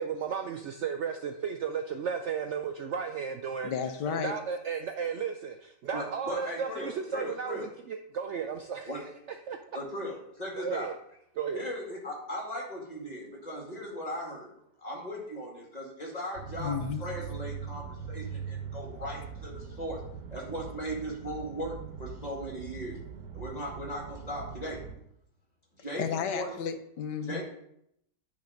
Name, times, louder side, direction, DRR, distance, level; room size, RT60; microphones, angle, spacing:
voice 1, 0.0-3.7 4.1-8.9 9.5-9.6 10.6-10.9 11.4-11.7, right 6 dB, 90° right, 5 dB, 0.6 m, -34 dB
voice 2, 3.6-4.3 16.6-17.0 26.0-27.4, left 7 dB, 80° left, 8 dB, 1.4 m, -32 dB
voice 3, 5.9-7.7 8.9-9.0 9.7-10.9 11.5-14.5 14.8-20.0 20.3-23.0 23.3-24.8 25.7-26.0 26.3-26.5 27.2-27.4, equal, 25° left, -2 dB, 2.5 m, -38 dB
sound 1, 16.3-25.0, right 7 dB, 65° right, 1.5 m, -41 dB
10.5 x 4.0 x 5.1 m, 0.74 s
omnidirectional pair, 1.8 m